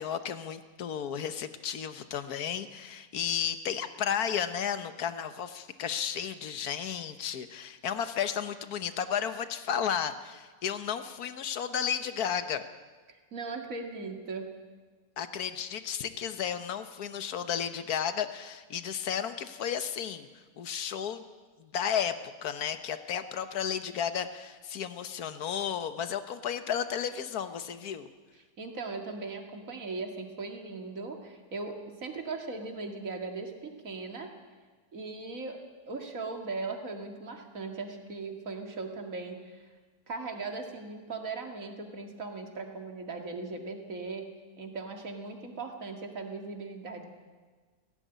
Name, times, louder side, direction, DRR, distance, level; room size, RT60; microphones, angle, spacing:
voice 1, 0.0-12.6 15.2-20.3 20.6-21.3 21.6-22.1 22.4-28.1, left 8 dB, 85° left, 11 dB, 1.5 m, -33 dB
voice 2, 13.1-14.5 28.6-34.3 34.9-35.6 35.9-39.7 40.1-44.3 44.6-47.1, right 3 dB, 65° right, 3 dB, 2.7 m, -38 dB
17.0 x 16.5 x 9.3 m, 1.4 s
omnidirectional pair, 1.6 m